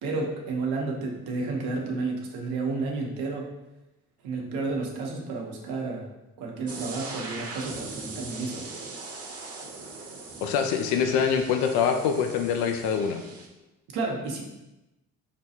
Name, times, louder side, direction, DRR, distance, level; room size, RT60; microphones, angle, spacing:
voice 1, 0.0-3.5 4.2-6.1 6.4-8.6 13.9-14.4, right 3 dB, 65° right, 0 dB, 0.9 m, -31 dB
sound 1, 6.7-13.5, right 3 dB, 35° right, 0.9 m, -40 dB
voice 2, 10.4-13.2, left 7 dB, 70° left, 5 dB, 0.5 m, -24 dB
5.0 x 2.3 x 2.8 m, 0.98 s
hypercardioid pair, 50°, 41 cm